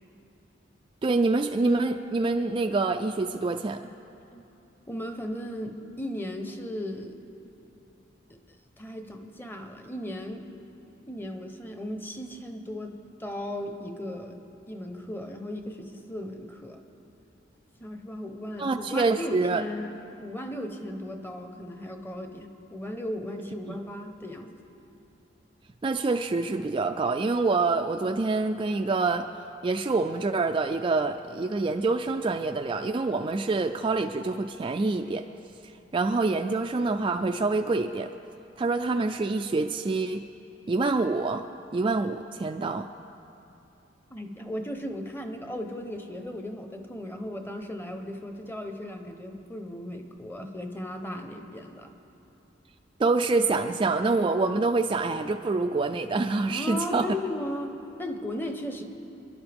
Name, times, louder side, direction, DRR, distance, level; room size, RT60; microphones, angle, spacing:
voice 1, 1.0-3.8 18.6-19.6 23.7-23.8 25.8-29.3 29.6-35.3 35.9-38.1 38.6-40.3 40.7-41.5 41.7-42.9 53.0-57.1, right 3 dB, 30° right, 6 dB, 0.3 m, -26 dB
voice 2, 4.9-7.1 8.3-10.5 11.1-14.4 14.7-16.8 17.8-24.6 44.1-51.9 56.5-58.8, left 1 dB, 10° left, 5 dB, 0.9 m, -36 dB
26.5 x 11.5 x 3.5 m, 2.9 s
head